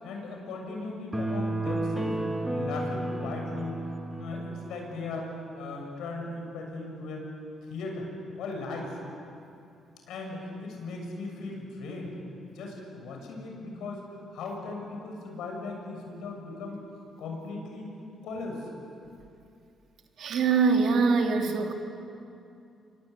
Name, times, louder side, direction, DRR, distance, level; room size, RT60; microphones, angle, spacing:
voice 1, 0.0-2.2 2.5-3.8 4.1-5.3 5.5-7.2 7.7-8.1 8.4-8.9 10.1-12.2 12.5-14.0 14.3-16.8 17.2-17.9 18.2-18.7, left 3 dB, 80° left, 1 dB, 7.1 m, -37 dB
sound 1, 1.1-4.7, right 1 dB, 15° right, 2.5 m, -31 dB
voice 2, 20.2-21.7, right 5 dB, 70° right, 2 dB, 3.3 m, -23 dB
27.5 x 23.5 x 8.6 m, 2.6 s
cardioid pair, 90°, 0 cm